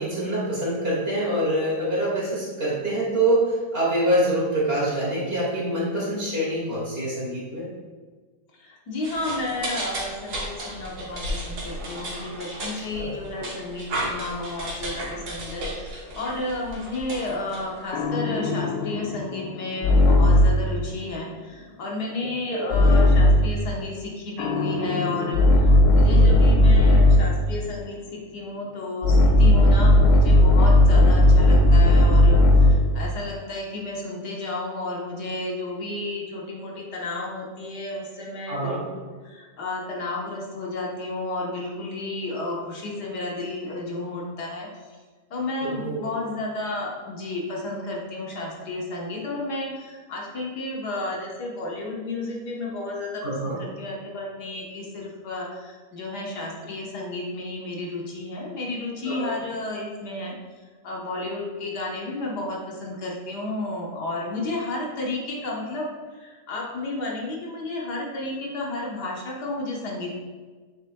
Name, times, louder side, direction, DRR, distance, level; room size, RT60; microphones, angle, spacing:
voice 1, 0.0-7.7 12.8-13.2 22.5-22.8 26.1-26.4 38.5-38.8 45.6-46.1 53.2-53.6 59.1-59.3, right 1 dB, 35° right, -6 dB, 2.1 m, -25 dB
voice 2, 8.5-45.0 45.3-70.1, left 2 dB, 65° left, -2 dB, 1.6 m, -32 dB
sound 1, 9.0-18.0, right 1 dB, 60° right, 1.8 m, -34 dB
sound 2, 17.9-20.7 22.7-23.5 24.4-27.4 29.0-32.9, left 1 dB, 85° left, 1.3 m, -16 dB
8.1 x 6.6 x 2.2 m, 1.4 s
omnidirectional pair, 1.9 m